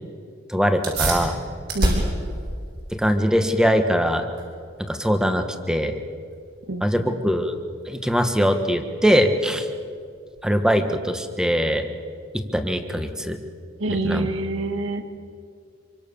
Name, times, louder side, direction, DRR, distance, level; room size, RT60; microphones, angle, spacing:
voice 1, 0.5-1.3 2.9-4.3 4.8-6.0 6.8-7.6 7.9-9.7 10.4-11.8 12.3-13.4 14.0-14.3, equal, 5° right, 7 dB, 1.5 m, -21 dB
sound 1, 0.8-10.8, right 1 dB, 50° right, 6.6 m, -31 dB
voice 2, 6.7-7.1 13.8-15.0, right 2 dB, 70° right, 7 dB, 2.1 m, -27 dB
26.0 x 24.5 x 7.1 m, 2.3 s
head